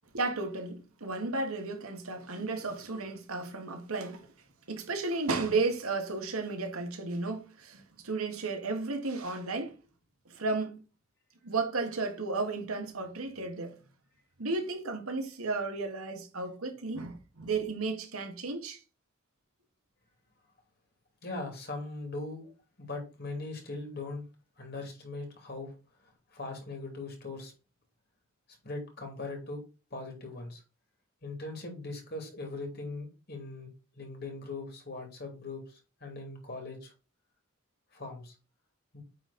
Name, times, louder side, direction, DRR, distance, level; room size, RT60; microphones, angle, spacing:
voice 1, 0.1-4.3 4.7-9.7 10.3-10.8 11.4-13.8 14.4-18.8, right 3 dB, 85° right, 1.6 m, -33 dB
voice 2, 21.2-22.5 22.8-24.2 24.6-25.7 26.3-27.5 28.6-29.6 29.9-30.6 31.2-36.9 37.9-38.3 38.9-39.0, left 2 dB, 45° left, 2.8 m, -40 dB
9.1 x 3.9 x 4.3 m
head